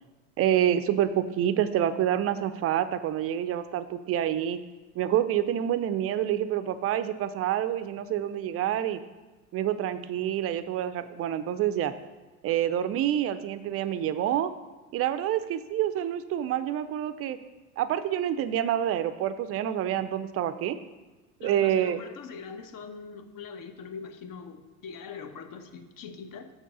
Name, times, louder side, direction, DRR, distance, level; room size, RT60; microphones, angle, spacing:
voice 1, 0.4-4.6 5.0-9.0 9.5-11.9 12.4-14.5 14.9-17.4 17.8-20.8 21.4-22.0, right 11 dB, 35° right, 12 dB, 0.4 m, -27 dB
voice 2, 21.4-26.5, left 5 dB, 45° left, 7 dB, 1.0 m, -42 dB
6.2 x 4.5 x 6.1 m, 1.2 s
hypercardioid pair, 90°, 46 cm